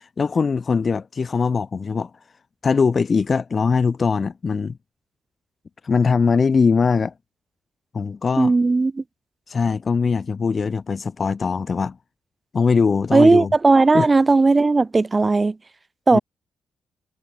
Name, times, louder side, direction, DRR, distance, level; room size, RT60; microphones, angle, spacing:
voice 1, 0.0-2.1 2.6-4.7 5.8-7.1 7.9-8.5 9.5-12.0 12.5-13.5 13.9-14.1 16.1-16.2, left 5 dB, 35° left, 0.6 m, -21 dB
voice 2, 8.4-9.0 13.1-15.6 16.1-16.2, right 3 dB, 25° right, 0.5 m, -16 dB
cardioid pair, 90°, 0 cm